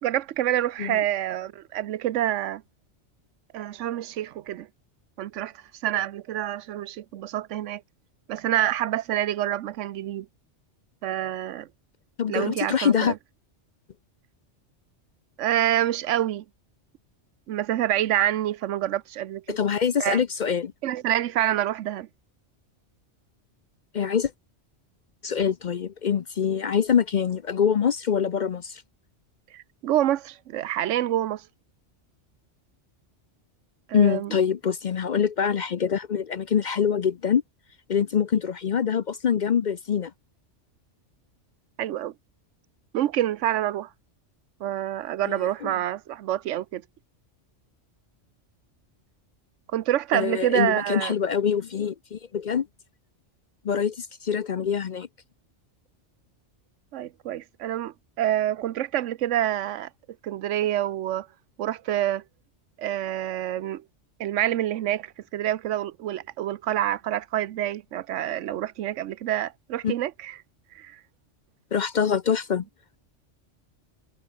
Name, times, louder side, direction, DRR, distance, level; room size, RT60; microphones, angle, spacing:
voice 1, 0.0-2.6 3.5-4.7 5.2-7.8 8.3-10.3 11.0-11.7 12.3-13.2 15.4-16.4 17.5-19.4 20.0-20.2 20.8-22.1 29.5-31.5 33.9-34.3 41.8-42.1 42.9-43.9 44.6-46.8 49.7-51.2 56.9-59.9 60.2-61.3 61.6-62.2 62.8-63.8 64.2-70.4 70.7-71.0, right 12 dB, 90° right, 1.0 m, -27 dB
voice 2, 12.2-13.1 19.5-20.7 23.9-24.3 25.2-28.8 33.9-37.4 37.9-40.1 45.2-45.7 50.1-52.7 53.6-55.1 69.8-69.9 71.7-72.6, left 7 dB, 50° left, 0.6 m, -24 dB
omnidirectional pair, 1.2 m